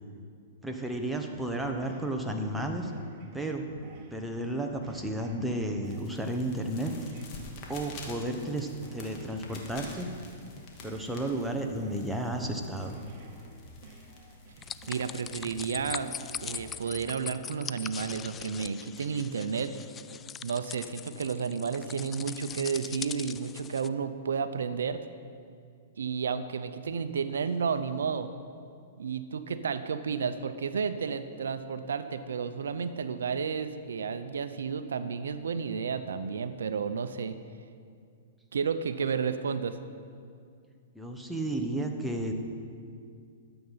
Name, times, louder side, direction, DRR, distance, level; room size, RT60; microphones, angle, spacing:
voice 1, 0.6-2.9 3.3-3.7 4.1-6.9 7.7-10.1 10.8-13.0 40.9-42.3, right 1 dB, ahead, 2 dB, 1.1 m, -32 dB
sound 1, 1.3-17.3, right 2 dB, 40° right, 1.8 m, -54 dB
sound 2, 5.8-16.7, left 3 dB, 40° left, 2.1 m, -49 dB
sound 3, 14.6-23.9, left 8 dB, 20° left, 0.3 m, -41 dB
voice 2, 14.9-16.1 16.4-19.7 20.4-25.1 26.0-28.3 29.0-37.4 38.5-39.8, right 6 dB, 85° right, 11 dB, 0.6 m, -32 dB
13.0 x 8.0 x 5.7 m, 2.3 s
hypercardioid pair, 130°, 0 cm